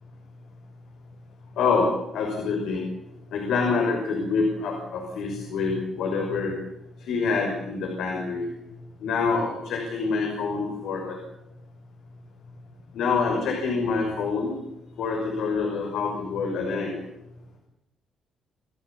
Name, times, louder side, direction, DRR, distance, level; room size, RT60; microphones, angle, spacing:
voice 1, 1.6-2.8 3.3-6.5 7.1-8.5 9.0-11.2 12.9-14.5 15.0-16.9, left 4 dB, 80° left, 2 dB, 6.1 m, -26 dB
29.0 x 16.0 x 8.7 m, 0.90 s
cardioid pair, 130°, 0 cm